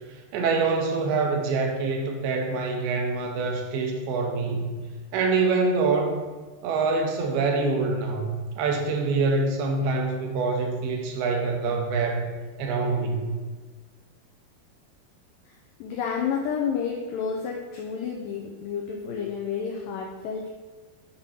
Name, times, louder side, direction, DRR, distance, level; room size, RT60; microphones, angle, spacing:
voice 1, 0.3-4.7 5.1-6.2 6.6-12.3 12.6-13.3, right 4 dB, 80° right, 2 dB, 2.7 m, -25 dB
voice 2, 15.5-20.5, left 6 dB, 85° left, 0 dB, 1.9 m, -30 dB
7.3 x 3.8 x 5.7 m, 1.3 s
omnidirectional pair, 4.7 m